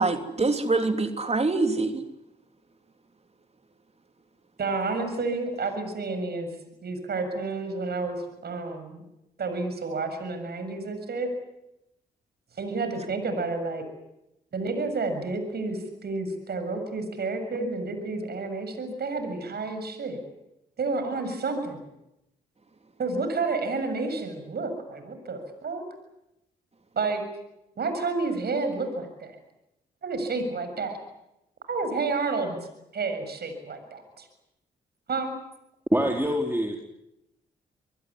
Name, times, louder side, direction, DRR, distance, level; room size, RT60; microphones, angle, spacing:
voice 1, 0.0-2.0, right 3 dB, 35° right, 7 dB, 3.4 m, -25 dB
voice 2, 4.6-6.5 6.8-9.0 9.4-11.3 12.6-13.8 14.5-20.2 20.8-21.9 23.0-25.8 26.9-27.2 27.8-29.4 30.0-31.0 31.7-32.6 32.9-34.3 35.1-35.3, right 3 dB, 55° right, 8 dB, 7.0 m, -30 dB
voice 3, 35.9-36.8, equal, 10° right, 1 dB, 4.2 m, -24 dB
25.5 x 20.0 x 9.9 m, 0.89 s
hypercardioid pair, 40°, 19 cm